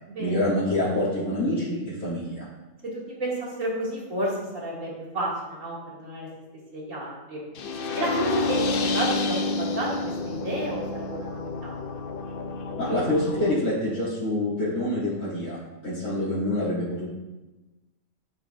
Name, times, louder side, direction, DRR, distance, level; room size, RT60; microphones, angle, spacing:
voice 1, 0.2-2.5 12.8-17.1, left 1 dB, 80° left, -12 dB, 2.9 m, -26 dB
voice 2, 2.8-6.3 6.7-7.4 7.9-11.7, right 1 dB, 70° right, -5 dB, 2.7 m, -31 dB
sound 1, 7.6-13.5, left 3 dB, 55° left, 0.6 m, -29 dB
12.5 x 6.9 x 2.5 m, 1.1 s
omnidirectional pair, 1.4 m